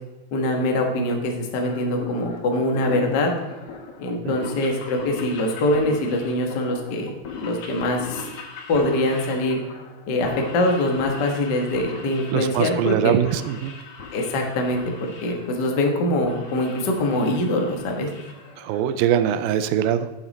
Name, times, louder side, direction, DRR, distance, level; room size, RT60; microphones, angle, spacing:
voice 1, 0.3-3.3 4.0-7.1 7.4-8.2 8.7-9.6 10.1-13.1 14.1-14.8 15.2-18.1, left 1 dB, 90° left, 2 dB, 0.9 m, -23 dB
sound 1, 1.6-19.0, left 4 dB, 60° left, 1.5 m, -39 dB
voice 2, 12.3-13.7 18.6-20.1, right 10 dB, 80° right, 12 dB, 2.2 m, -22 dB
9.0 x 8.8 x 4.1 m, 1.1 s
omnidirectional pair, 4.2 m